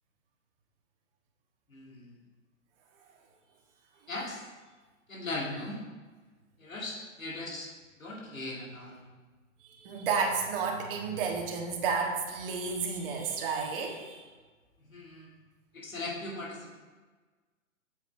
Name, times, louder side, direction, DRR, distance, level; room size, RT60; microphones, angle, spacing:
voice 1, 1.7-2.2 4.1-4.5 5.1-5.8 6.6-7.7 8.0-9.0 14.8-15.3 15.7-16.8, left 2 dB, 85° left, -2 dB, 2.1 m, -39 dB
voice 2, 9.6-14.3, right 5 dB, 45° right, 0 dB, 1.7 m, -31 dB
8.0 x 7.8 x 3.3 m, 1.3 s
figure-of-eight pair, 120°, 40 cm